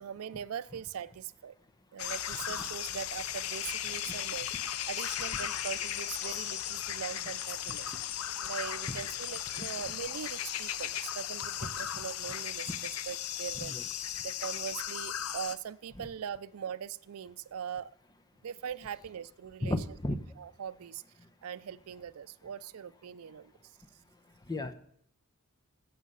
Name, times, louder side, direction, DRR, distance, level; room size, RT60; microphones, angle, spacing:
voice 1, 0.0-1.5 1.9-7.9 8.4-13.8 14.2-17.9 18.4-19.8 20.4-21.0 21.4-23.5, right 8 dB, 75° right, 17 dB, 0.4 m, -41 dB
sound 1, 2.0-15.6, left 10 dB, 75° left, 0.6 m, -36 dB
voice 2, 19.6-20.2 24.5-24.7, left 1 dB, 20° left, 8 dB, 0.8 m, -33 dB
15.5 x 7.3 x 5.5 m, 0.69 s
head